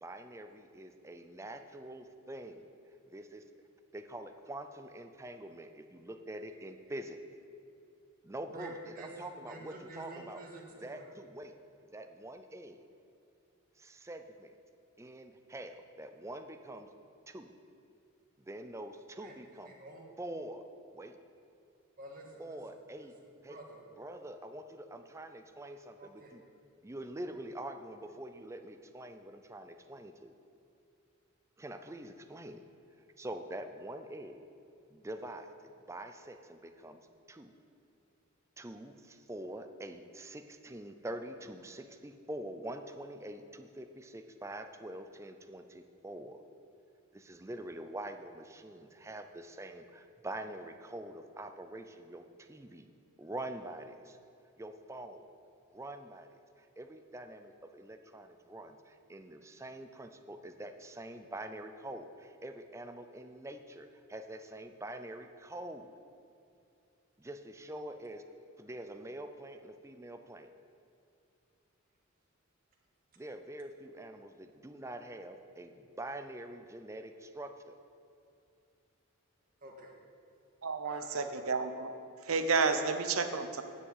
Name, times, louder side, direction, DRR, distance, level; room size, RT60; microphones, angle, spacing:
voice 1, 0.0-2.6 3.1-3.4 3.9-7.2 8.2-10.4 10.8-11.5 11.9-12.9 13.8-14.6 15.0-16.9 17.3-17.5 18.4-19.7 20.2-20.6 20.9-21.2 22.4-23.2 23.4-23.6 24.0-26.4 26.8-30.3 31.6-32.6 33.2-34.4 34.9-37.0 37.3-37.5 38.6-46.4 47.1-52.9 53.2-54.2 54.6-55.3 55.7-56.3 56.6-65.9 67.2-68.2 68.6-70.5 73.2-77.8, right 1 dB, 15° right, 7 dB, 0.5 m, -45 dB
voice 2, 8.5-11.0 19.2-20.0 22.0-22.6 23.0-23.1 23.5-23.8 26.0-26.3 79.6-79.9 80.8-81.5, right 2 dB, 45° right, -1 dB, 1.7 m, -49 dB
voice 3, 80.6-81.9 82.2-83.6, right 4 dB, 85° right, 8 dB, 0.8 m, -31 dB
9.7 x 6.1 x 8.0 m, 2.6 s
head